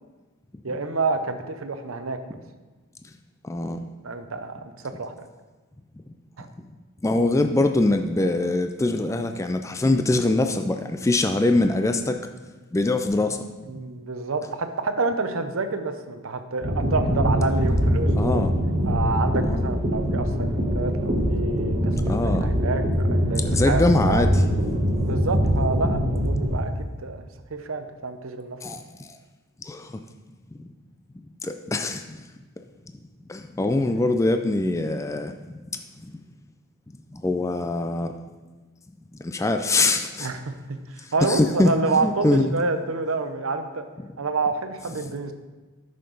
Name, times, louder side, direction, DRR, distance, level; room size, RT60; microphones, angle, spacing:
voice 1, 0.6-2.2 4.0-4.6 5.0-5.3 6.4-6.5 13.7-18.4 18.8-22.8 23.1-23.8 24.1-24.3 25.0-28.6 40.2-43.8 44.2-45.3, right 3 dB, 65° right, 8 dB, 0.7 m, -28 dB
voice 2, 3.4-3.8 7.0-12.2 12.7-13.5 13.7-13.8 18.2-18.5 19.4-19.7 22.1-22.5 23.4-24.4 28.6-29.2 29.6-29.9 30.6-30.7 31.4-32.2 33.3-36.1 37.1-38.1 39.2-40.3 41.0-41.7 42.0-42.5, left 2 dB, 15° left, 7 dB, 0.3 m, -23 dB
sound 1, 16.6-26.6, equal, 30° right, 1.1 m, -23 dB
10.5 x 6.6 x 3.9 m, 1.3 s
head